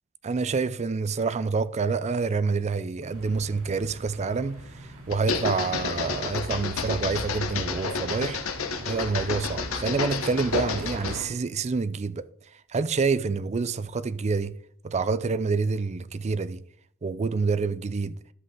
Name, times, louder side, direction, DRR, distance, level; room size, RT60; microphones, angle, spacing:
voice 1, 0.2-4.6 5.1-8.4 8.9-12.3 12.7-14.6 14.8-16.6 17.0-18.2, right 4 dB, 30° right, 0.4 m, -27 dB
sound 1, 3.1-11.3, right 1 dB, 75° right, 2.9 m, -43 dB
sound 2, 5.1-11.3, left 4 dB, 70° left, 0.9 m, -30 dB
12.5 x 5.4 x 3.7 m
head